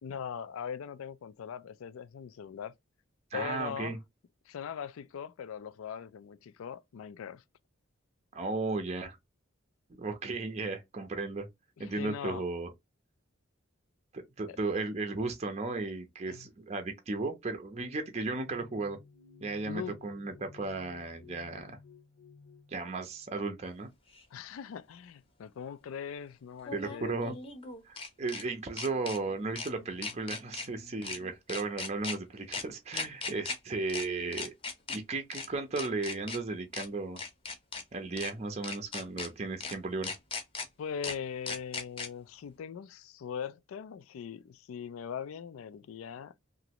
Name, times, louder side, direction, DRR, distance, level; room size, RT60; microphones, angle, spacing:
voice 1, 0.0-2.7 3.3-4.0 4.5-7.4 11.8-12.4 14.5-14.6 16.3-16.5 19.6-20.0 24.3-27.2 40.8-46.3, left 7 dB, 90° left, 0.4 m, -40 dB
voice 2, 3.3-4.0 8.3-9.2 10.0-11.5 11.8-12.7 14.1-19.0 19.4-21.8 22.7-23.9 26.7-27.3 27.8-34.5 34.9-37.2 37.9-40.1, right 3 dB, 30° right, 0.5 m, -35 dB
sound 1, 18.3-23.5 24.3-24.6 25.7-25.8 26.5-26.6 27.4-27.8 28.0-31.3, left 4 dB, 60° left, 0.7 m, -56 dB
sound 2, 24.1-24.2 26.6-28.4 28.8-29.2 29.6-29.7 30.0-30.7 31.0-31.2 31.5-32.2 32.5-32.6 32.9-33.6 33.9-34.0 34.3-35.0 35.3-35.5 35.8-36.4 36.7-36.9 37.2-37.8 38.2-38.3 38.6-39.3 39.6-39.7 40.0-40.7 41.0-41.1 41.5-42.1, left 4 dB, 25° left, 0.7 m, -37 dB
2.9 x 2.5 x 2.8 m
head